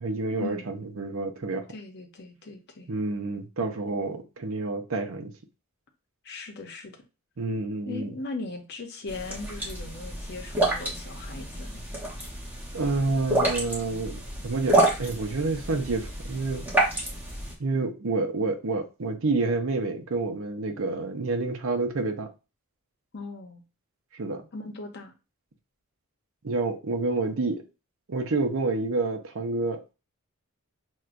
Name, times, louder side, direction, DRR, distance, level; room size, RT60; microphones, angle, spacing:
voice 1, 0.0-1.6 2.9-5.3 7.4-8.1 12.7-16.6 17.6-22.3 24.1-24.5 26.4-27.6 28.1-29.8, right 3 dB, 65° right, 0.6 m, -28 dB
voice 2, 1.7-2.9 6.2-7.0 7.9-11.9 23.1-23.6 24.5-25.1, left 3 dB, 50° left, 0.7 m, -39 dB
sound 1, 9.1-17.5, right 1 dB, 10° right, 0.9 m, -29 dB
6.0 x 2.2 x 2.5 m
head